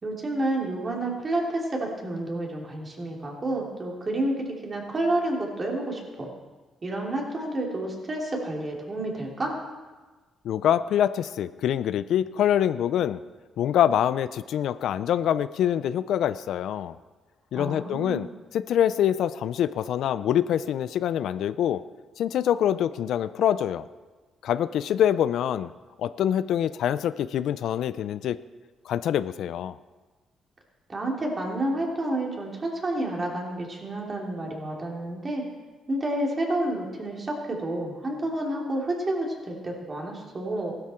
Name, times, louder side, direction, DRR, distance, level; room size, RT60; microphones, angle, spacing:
voice 1, 0.0-6.3 6.8-9.6 17.5-18.3 30.9-35.4 35.9-40.7, right 1 dB, 35° right, -1 dB, 3.2 m, -29 dB
voice 2, 10.4-13.2 13.6-17.0 17.5-18.3 18.5-21.8 22.2-23.8 24.4-25.7 26.0-28.4 28.9-29.7, left 10 dB, 75° left, 15 dB, 0.4 m, -25 dB
15.5 x 12.5 x 4.4 m, 1.3 s
cardioid pair, 90°, 0 cm